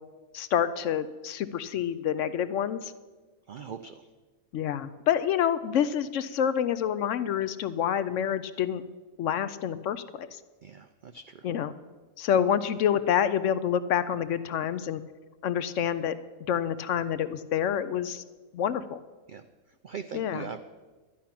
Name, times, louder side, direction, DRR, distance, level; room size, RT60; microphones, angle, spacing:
voice 1, 0.3-2.9 4.5-8.8 9.2-10.4 11.4-11.7 12.2-15.0 15.4-16.2 16.5-18.2 18.5-19.0 20.1-20.5, left 9 dB, 70° left, 13 dB, 0.9 m, -27 dB
voice 2, 3.5-4.1 10.6-11.5 19.3-19.5 19.8-20.6, right 6 dB, 75° right, 9 dB, 0.4 m, -41 dB
12.0 x 10.0 x 5.9 m, 1.3 s
omnidirectional pair, 1.5 m